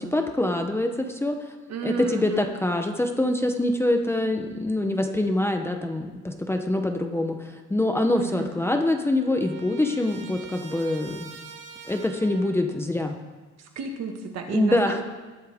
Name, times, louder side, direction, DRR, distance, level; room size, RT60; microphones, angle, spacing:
voice 1, 0.0-1.4 1.8-11.3 11.9-13.1 14.5-15.0, left 1 dB, 10° left, 4 dB, 0.7 m, -25 dB
voice 2, 1.7-2.5 4.0-4.1 8.1-8.5 13.6-15.0, right 6 dB, 55° right, 4 dB, 1.7 m, -33 dB
Trumpet, 8.3-12.7, right 6 dB, 40° right, 2.0 m, -45 dB
20.0 x 8.5 x 3.5 m, 1.2 s
cardioid pair, 155°, 30 cm